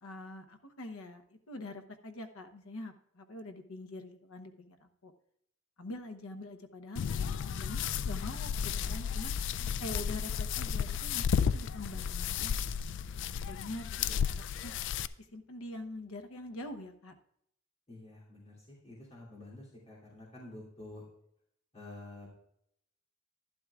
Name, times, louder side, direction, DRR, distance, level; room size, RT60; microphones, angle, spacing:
voice 1, 0.0-5.1 5.8-9.3 9.8-12.5 13.5-14.7 15.2-17.1, left 1 dB, 80° left, 8 dB, 0.9 m, -45 dB
sound 1, 7.0-15.1, left 7 dB, 60° left, 0.3 m, -33 dB
voice 2, 9.6-10.3 14.0-14.2 17.9-21.1 21.7-22.3, left 2 dB, 30° left, -6 dB, 2.8 m, -50 dB
11.5 x 11.0 x 2.4 m, 0.73 s
head